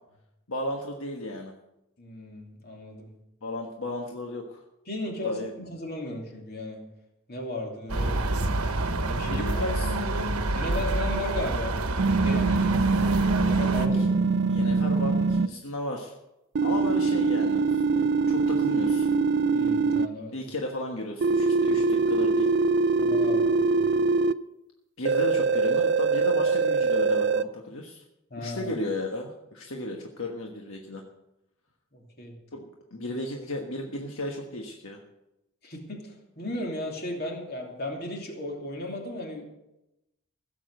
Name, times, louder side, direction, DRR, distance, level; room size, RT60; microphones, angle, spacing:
voice 1, 0.5-1.5 3.4-4.6 5.2-5.5 9.1-10.3 14.0-14.1 14.5-16.1 16.6-19.1 20.3-22.5 25.0-28.0 28.4-31.0 32.5-35.0, left 1 dB, 70° left, 1 dB, 1.4 m, -34 dB
voice 2, 2.0-3.1 4.9-6.8 7.3-8.5 9.0-9.6 10.5-11.8 12.1-14.2 19.5-20.3 21.6-21.8 23.0-23.9 28.3-28.7 31.9-32.4 35.6-39.4, left 1 dB, 45° left, 1 dB, 2.9 m, -36 dB
sound 1, 7.9-13.9, right 2 dB, 90° right, 1.2 m, -28 dB
sound 2, 12.0-15.5 16.6-20.1 21.2-24.3 25.1-27.4, right 4 dB, 50° right, 0.4 m, -23 dB
16.5 x 7.5 x 7.8 m, 0.92 s
head